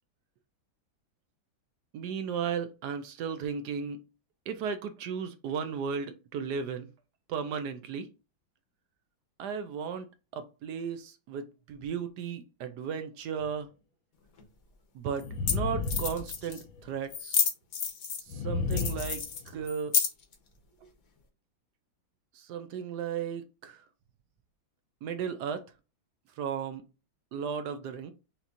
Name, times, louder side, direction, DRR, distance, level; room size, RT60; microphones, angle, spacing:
voice 1, 1.9-4.0 4.5-6.9 7.3-8.1 9.4-10.1 10.3-13.7 14.9-17.4 18.3-19.9 22.3-23.8 25.0-25.6 26.4-26.8 27.3-28.1, right 7 dB, 70° right, 1.0 m, -35 dB
sound 1, 13.4-13.5 15.2-16.8 18.3-19.7, left 4 dB, 85° left, 1.5 m, -33 dB
sound 2, 14.4-14.5 15.2-15.3 15.5-15.6 15.8-16.6 17.1-18.3 18.7-20.3, left 6 dB, 55° left, 1.2 m, -30 dB
6.0 x 2.8 x 2.5 m
omnidirectional pair, 2.1 m